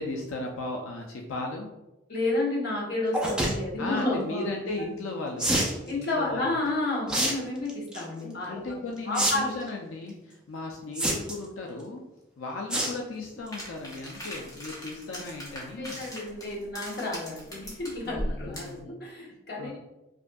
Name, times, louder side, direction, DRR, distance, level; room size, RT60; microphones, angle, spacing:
voice 1, 0.0-1.7 3.8-6.6 7.2-7.3 8.2-12.0 12.4-16.0 18.0-19.0 19.6-19.8, left 2 dB, 90° left, 0 dB, 0.5 m, -36 dB
voice 2, 2.1-4.6 5.9-8.8 9.1-9.6 15.8-19.8, left 2 dB, 55° left, -3 dB, 1.0 m, -31 dB
sound 1, 3.1-3.5 5.4-5.7 7.1-7.3 7.7-8.0 9.1-9.3 9.6-9.7 11.0-11.5 12.7-13.0 13.4-13.6 14.0-14.1 14.3-14.4, right 1 dB, 5° right, 0.5 m, -26 dB
sound 2, 13.5-18.8, equal, 20° left, 0.9 m, -39 dB
5.0 x 2.6 x 2.2 m, 0.99 s
head